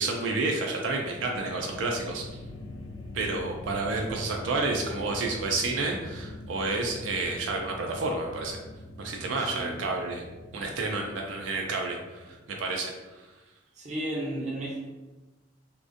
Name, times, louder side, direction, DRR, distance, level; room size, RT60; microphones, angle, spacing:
voice 1, 0.0-2.4 3.1-8.6 9.0-10.2 10.5-13.3, right 3 dB, 85° right, 1 dB, 0.3 m, -30 dB
sound 1, 0.8-13.0, left 1 dB, 80° left, 0.3 m, -43 dB
voice 2, 9.4-9.8 13.7-14.9, right 1 dB, 40° right, -4 dB, 0.6 m, -34 dB
2.5 x 2.2 x 2.4 m, 1.1 s
head